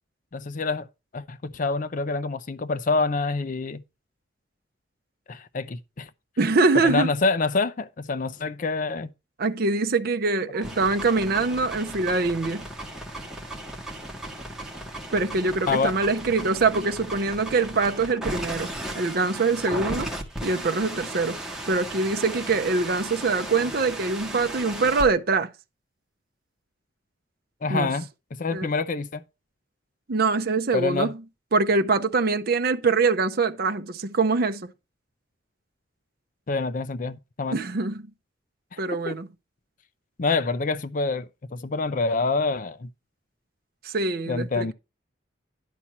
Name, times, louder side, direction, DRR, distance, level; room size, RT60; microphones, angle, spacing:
voice 1, 0.3-0.9 1.1-3.8 5.3-6.1 6.8-9.1 15.7-15.9 27.6-29.2 30.7-31.1 36.5-37.6 38.7-38.8 39.1-39.2 40.2-42.9 44.3-44.7, left 3 dB, 45° left, 0.5 m, -26 dB
voice 2, 6.4-7.1 9.4-12.7 15.1-20.1 20.4-21.4 21.7-25.5 27.7-27.9 28.5-28.7 30.1-31.1 31.5-34.7 37.5-38.1 38.8-39.3 43.8-44.7, right 3 dB, 55° right, 0.6 m, -24 dB
sound 1, 10.5-25.0, right 1 dB, 5° right, 1.6 m, -36 dB
11.0 x 4.2 x 5.9 m
head